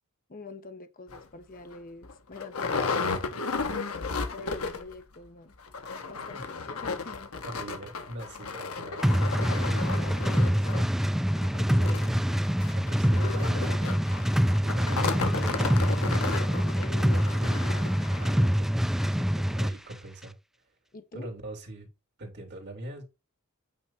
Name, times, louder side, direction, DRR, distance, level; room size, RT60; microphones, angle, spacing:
voice 1, 0.3-3.4 4.2-5.6 6.1-7.3 11.6-12.0 16.7-17.5 20.9-21.3, left 3 dB, 40° left, 0.9 m, -45 dB
sound 1, 1.1-1.2 1.7-1.8 2.0-5.0 5.2-5.3 5.6-18.4 19.0-19.1 19.5-19.6, left 4 dB, 75° left, 1.0 m, -34 dB
voice 2, 7.4-10.7 12.7-14.1 14.6-16.0 18.2-18.8 19.1-20.3 21.1-21.9 22.2-23.0, right 1 dB, 55° right, 3.0 m, -42 dB
sound 2, 9.0-19.8, equal, ahead, 0.3 m, -25 dB
8.9 x 3.3 x 4.2 m
head